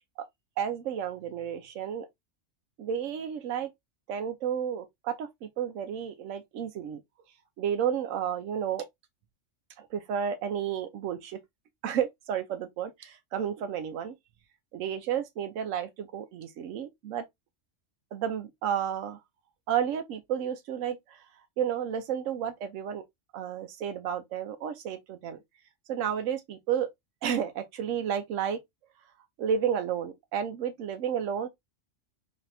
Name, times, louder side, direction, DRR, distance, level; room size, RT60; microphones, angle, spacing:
voice 1, 0.6-2.1 2.8-3.7 4.1-7.0 7.6-8.9 9.8-11.4 11.8-14.2 14.7-17.2 18.1-19.2 19.7-21.2 21.6-23.0 23.3-25.4 25.9-26.9 27.2-28.6 29.4-31.5, right 8 dB, 85° right, 1.0 m, -31 dB
4.0 x 2.7 x 2.6 m
omnidirectional pair, 1.3 m